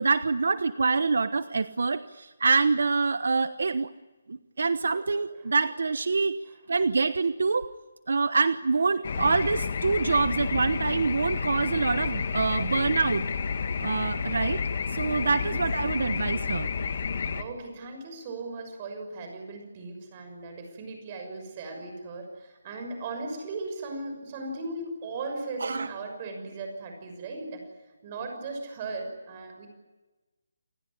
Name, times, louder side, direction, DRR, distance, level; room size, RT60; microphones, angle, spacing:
voice 1, 0.0-3.9 4.3-6.4 6.7-7.7 8.1-13.2 13.8-14.6 14.9-16.7 25.6-25.9, right 4 dB, 65° right, 13 dB, 1.1 m, -25 dB
sound 1, 9.0-17.4, left 5 dB, 40° left, 1.8 m, -30 dB
voice 2, 17.3-27.7 28.0-29.7, right 3 dB, 25° right, 5 dB, 6.4 m, -37 dB
28.5 x 19.0 x 9.9 m, 1.2 s
hypercardioid pair, 175°, 0 cm